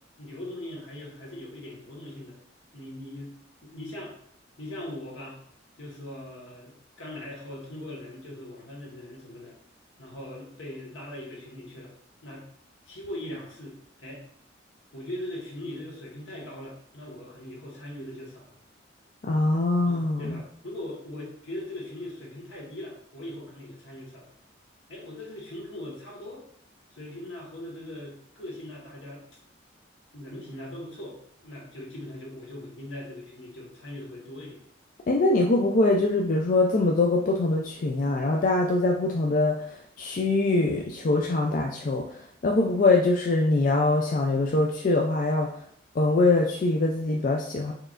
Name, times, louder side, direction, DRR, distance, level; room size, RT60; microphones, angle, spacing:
voice 1, 0.2-2.4 2.7-4.1 4.6-5.4 5.8-9.6 10.0-11.9 12.2-12.5 12.9-14.2 14.9-18.6 19.8-24.3 24.9-26.4 26.9-29.2 30.1-34.6, left 1 dB, 80° left, -3 dB, 1.4 m, -40 dB
voice 2, 19.2-20.4 35.1-45.6 45.9-47.7, left 2 dB, 45° left, 0 dB, 0.4 m, -23 dB
4.6 x 3.2 x 2.5 m, 0.67 s
head